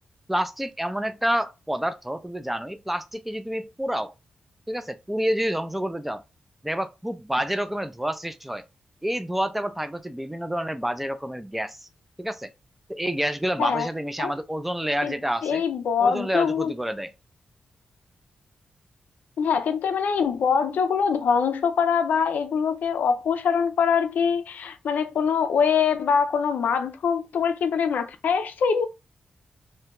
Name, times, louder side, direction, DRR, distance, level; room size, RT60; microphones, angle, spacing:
voice 1, 0.3-4.1 4.7-6.2 6.6-8.6 9.0-11.9 12.2-12.5 12.9-15.6 16.0-17.1, equal, 5° right, 0.3 m, -28 dB
voice 2, 15.4-16.7 19.4-28.9, left 6 dB, 80° left, 0.4 m, -23 dB
2.4 x 2.1 x 2.9 m
cardioid pair, 75°, 3 cm